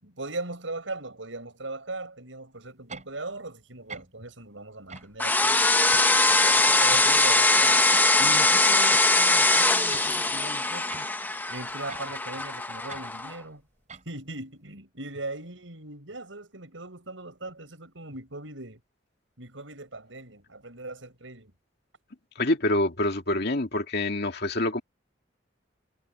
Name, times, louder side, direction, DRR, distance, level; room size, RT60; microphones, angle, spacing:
voice 1, 0.0-5.6 6.3-7.9 8.2-11.1 11.5-13.6 14.0-18.8 19.4-21.5, right 2 dB, 80° right, 6.6 m, -39 dB
sound 1, 2.9-3.1 3.9-4.1 4.9-5.1 5.9-6.1 6.9-7.0 7.9-8.1 8.9-9.1 9.9-10.1 10.9-11.1 11.9-12.1 12.9-13.1 13.9-14.1, right 4 dB, 40° right, 7.1 m, -42 dB
sound 2, 5.2-13.3, left 2 dB, 10° left, 1.0 m, -22 dB
voice 2, 22.4-24.8, left 1 dB, 55° left, 2.4 m, -26 dB
head